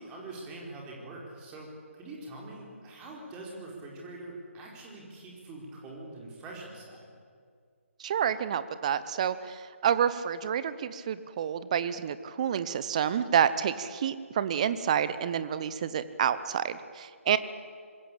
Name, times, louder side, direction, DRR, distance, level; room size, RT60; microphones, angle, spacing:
voice 1, 0.0-7.1, right 2 dB, 15° right, -2 dB, 4.7 m, -44 dB
voice 2, 8.0-17.4, right 8 dB, 30° right, 14 dB, 1.0 m, -29 dB
25.5 x 21.5 x 8.6 m, 2.1 s
figure-of-eight pair, 145°, 8 cm